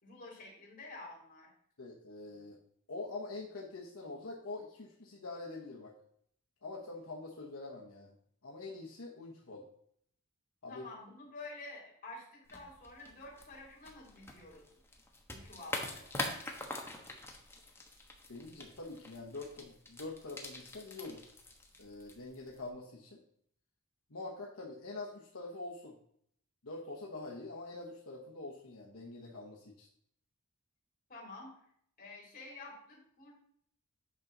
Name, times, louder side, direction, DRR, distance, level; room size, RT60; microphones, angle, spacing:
voice 1, 0.0-1.5 10.7-14.7 15.3-16.1 31.1-31.5 32.0-33.3, left 2 dB, 40° left, -4 dB, 3.3 m, -49 dB
voice 2, 1.8-2.6 2.9-6.0 6.6-8.1 8.4-9.6 10.6-10.8 18.3-21.3 21.8-23.2 24.1-26.0 26.6-29.9, left 2 dB, 75° left, -2 dB, 1.1 m, -45 dB
sound 1, 12.5-22.7, left 2 dB, 10° left, 1.1 m, -45 dB
8.6 x 6.1 x 3.9 m, 0.67 s
head